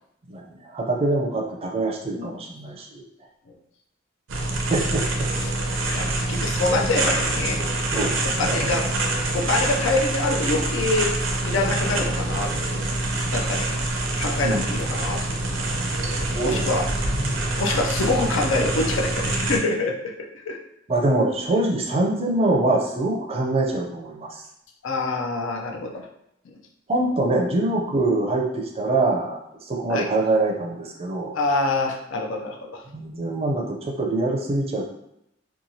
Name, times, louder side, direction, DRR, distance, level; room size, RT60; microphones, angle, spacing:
voice 1, 0.3-3.0 4.7-5.3 7.9-8.8 14.4-14.6 16.1-16.7 17.1-17.4 20.9-24.4 26.9-31.4 32.9-34.9, right 2 dB, 30° right, 1 dB, 0.4 m, -24 dB
sound 1, 4.3-19.6, right 2 dB, 80° right, 0.5 m, -25 dB
voice 2, 5.3-7.6 8.4-8.8 9.3-11.1 11.4-12.8 13.3-13.7 14.2-15.4 16.4-16.9 17.6-20.6 24.8-26.1 29.9-30.1 31.3-32.8, left 2 dB, 80° left, 2 dB, 0.5 m, -26 dB
2.9 x 2.2 x 2.7 m, 0.78 s
head